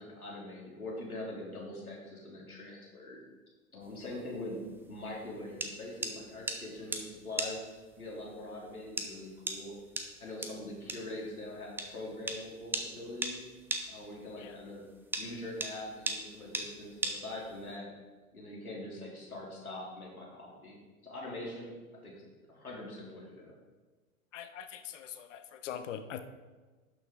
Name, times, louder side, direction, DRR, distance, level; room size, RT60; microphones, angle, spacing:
voice 1, 0.0-3.2 3.7-4.6 4.9-7.6 8.0-9.7 10.2-13.4 13.9-14.8 15.1-17.9 18.3-20.8 21.0-21.7 22.0-22.2 22.5-23.5, left 1 dB, 85° left, -4 dB, 2.9 m, -43 dB
sound 1, 3.8-17.8, right 2 dB, 5° right, 0.5 m, -39 dB
voice 2, 24.3-26.2, left 9 dB, 60° left, 9 dB, 0.9 m, -42 dB
11.5 x 6.3 x 3.7 m, 1.3 s
figure-of-eight pair, 95°, 43 cm